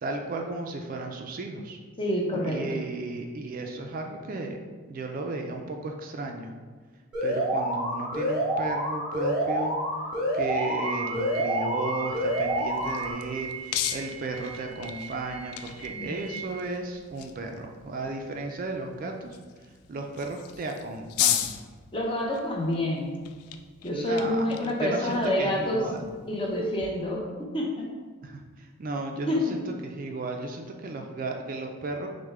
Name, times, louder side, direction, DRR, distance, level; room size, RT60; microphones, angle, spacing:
voice 1, 0.0-1.8 2.4-4.6 4.9-6.5 7.2-9.8 10.3-21.6 23.9-26.1 28.2-32.1, right 2 dB, 40° right, 3 dB, 0.3 m, -34 dB
voice 2, 2.0-2.8 15.9-16.2 21.9-23.1 23.8-25.8 26.3-27.3 27.5-27.9 29.3-29.5, left 1 dB, 25° left, 0 dB, 0.6 m, -27 dB
Alarm, 7.1-13.1, equal, ahead, 1.4 m, -28 dB
sound 1, 10.6-16.5, right 7 dB, 60° left, 1.2 m, -40 dB
sound 2, 12.4-26.9, left 10 dB, 90° left, 0.3 m, -37 dB
6.2 x 2.1 x 3.5 m, 1.5 s
head